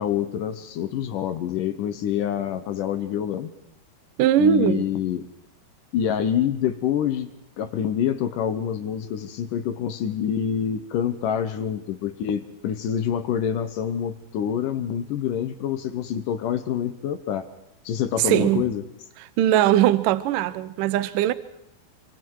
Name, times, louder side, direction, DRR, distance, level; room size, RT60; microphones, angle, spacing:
voice 1, 0.0-3.5 4.4-5.3 5.9-7.3 7.6-17.5 17.8-18.8, left 9 dB, 70° left, 2.2 m, -26 dB
voice 2, 4.2-4.8 18.2-18.7 19.4-21.3, right 12 dB, 70° right, 2.2 m, -20 dB
27.5 x 25.0 x 4.7 m
omnidirectional pair, 4.7 m